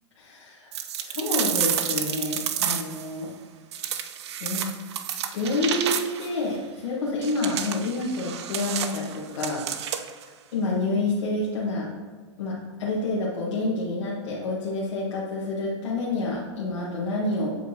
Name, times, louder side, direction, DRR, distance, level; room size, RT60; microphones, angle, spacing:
voice 1, 0.1-0.7 1.0-3.3 4.4-4.7 5.0-9.6 10.5-11.9 12.4-17.6, left 2 dB, 70° left, -6 dB, 1.3 m, -28 dB
sound 1, 0.7-3.1 3.7-6.3 7.2-10.2, right 9 dB, 60° right, 0.5 m, -30 dB
7.8 x 4.8 x 2.8 m, 1.5 s
hypercardioid pair, 145°, 16 cm